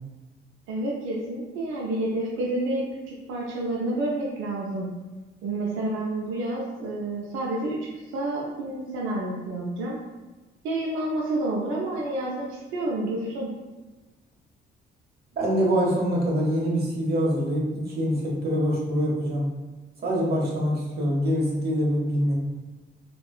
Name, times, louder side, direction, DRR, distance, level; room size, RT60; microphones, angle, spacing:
voice 1, 0.7-4.9 5.4-7.9 8.1-10.0 10.6-13.5, right 2 dB, 90° right, -3 dB, 0.5 m, -29 dB
voice 2, 15.4-19.5 20.0-22.3, equal, 55° right, -3 dB, 0.9 m, -24 dB
3.5 x 2.2 x 2.3 m, 1.2 s
cardioid pair, 90°, 20 cm